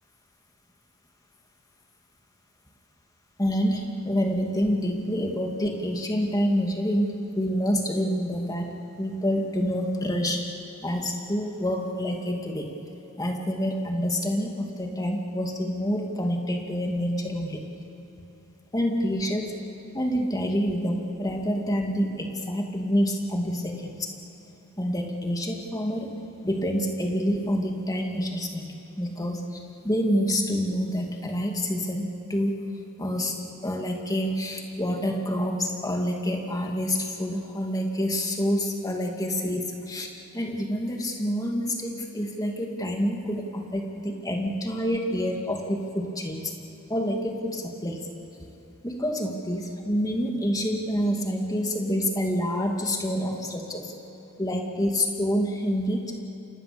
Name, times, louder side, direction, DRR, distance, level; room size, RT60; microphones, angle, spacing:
voice 1, 3.4-10.4 10.8-12.7 13.2-17.7 18.7-19.5 19.9-24.1 24.8-26.1 26.4-32.6 33.0-40.1 40.3-46.6 46.9-48.1 48.3-48.5 48.8-53.9 54.4-56.0, equal, 15° left, 2 dB, 2.4 m, -27 dB
29.5 x 26.0 x 7.0 m, 3.0 s
head